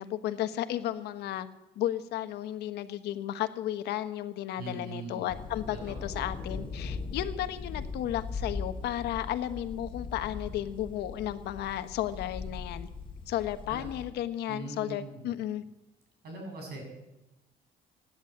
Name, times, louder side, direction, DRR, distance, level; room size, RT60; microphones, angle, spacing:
voice 1, 0.0-1.5 1.7-12.9 13.3-15.6, left 12 dB, 80° left, 10 dB, 1.3 m, -33 dB
voice 2, 4.5-5.3 5.7-6.3 13.7-13.8 14.5-15.2 16.2-16.8, right 3 dB, 70° right, 1 dB, 7.8 m, -41 dB
sound 1, 5.3-14.1, left 4 dB, 30° left, 2.7 m, -39 dB
17.0 x 10.0 x 7.9 m, 0.98 s
cardioid pair, 110°, 17 cm